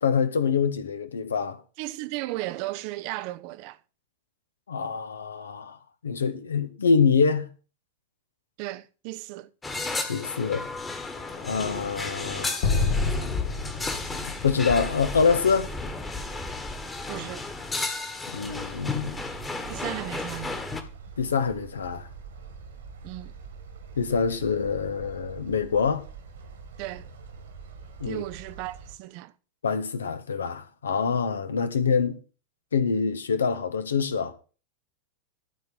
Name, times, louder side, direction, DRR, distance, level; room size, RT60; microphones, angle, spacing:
voice 1, 0.0-1.6 4.7-5.8 6.0-7.5 10.1-10.7 11.4-12.7 14.3-15.7 18.3-19.2 21.2-22.1 24.0-26.0 28.0-28.2 29.6-32.2 32.7-34.3, left 5 dB, 70° left, 1.2 m, -25 dB
voice 2, 1.8-3.8 8.6-9.5 17.1-17.5 19.7-20.6 23.0-23.3 26.8-27.1 28.1-29.3, right 17 dB, 45° right, 0.7 m, -35 dB
sound 1, 9.6-20.8, left 3 dB, 15° left, 1.6 m, -33 dB
Explosion, 12.6-15.9, left 4 dB, 50° left, 1.3 m, -28 dB
sound 2, 18.4-29.0, right 5 dB, 65° right, 2.1 m, -44 dB
12.5 x 4.5 x 7.5 m
figure-of-eight pair, 90°, 0 cm